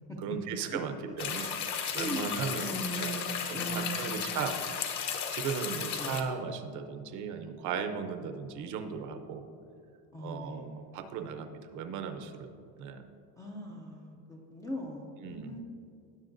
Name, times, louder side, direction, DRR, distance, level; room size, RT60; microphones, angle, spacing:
voice 1, 0.2-1.5 1.9-3.2 3.5-4.6 5.3-9.4 10.2-12.5 12.8-13.1 15.2-15.6, right 6 dB, 45° right, 8 dB, 0.7 m, -37 dB
sound 1, 1.2-6.2, left 7 dB, 40° left, 0.9 m, -34 dB
voice 2, 1.9-4.5 5.9-6.2 10.1-11.0 13.4-15.6, equal, 10° left, -2 dB, 0.4 m, -40 dB
18.5 x 6.9 x 2.6 m, 2.5 s
cardioid pair, 180°, 43 cm